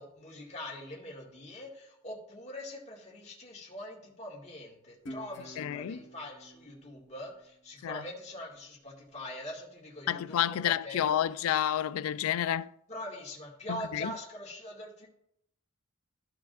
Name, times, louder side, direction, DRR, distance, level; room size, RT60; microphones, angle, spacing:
voice 1, 0.0-11.2 12.9-15.1, left 1 dB, 35° left, 2.1 m, -43 dB
Guitar, 5.1-8.3, equal, 60° left, 1.5 m, -49 dB
voice 2, 5.6-6.0 7.8-8.0 10.1-12.7 13.7-14.1, left 10 dB, 80° left, 0.3 m, -30 dB
14.0 x 4.8 x 2.5 m
head